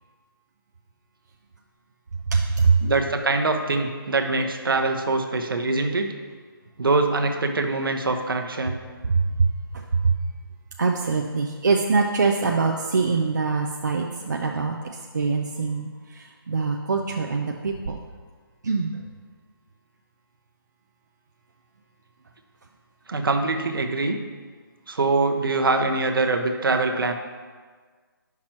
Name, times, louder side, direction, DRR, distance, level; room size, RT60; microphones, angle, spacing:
voice 1, 2.3-2.8 9.1-9.5 9.7-10.2 10.8-14.7 15.1-15.9 16.1-18.0 18.6-19.0, right 4 dB, 50° right, 1 dB, 0.4 m, -23 dB
voice 2, 2.8-6.1 6.8-8.8 23.1-24.2 24.9-27.1, right 3 dB, 70° right, 5 dB, 0.8 m, -23 dB
8.8 x 5.9 x 3.0 m, 1.5 s
hypercardioid pair, 180°, 12 cm